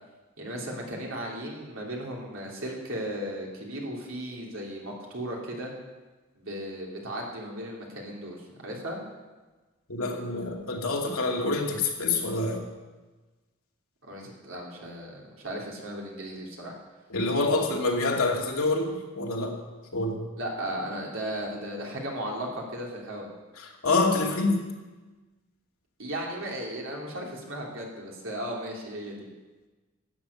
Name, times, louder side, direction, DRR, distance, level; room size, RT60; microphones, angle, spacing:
voice 1, 0.4-5.7 6.3-8.4 8.6-9.0 14.0-16.8 20.4-23.3 26.0-29.3, right 1 dB, 65° right, -2 dB, 3.1 m, -36 dB
voice 2, 9.9-12.6 17.1-19.6 19.9-20.2 23.6-24.6, left 3 dB, 80° left, 0 dB, 2.4 m, -26 dB
12.5 x 7.8 x 8.3 m, 1.2 s
head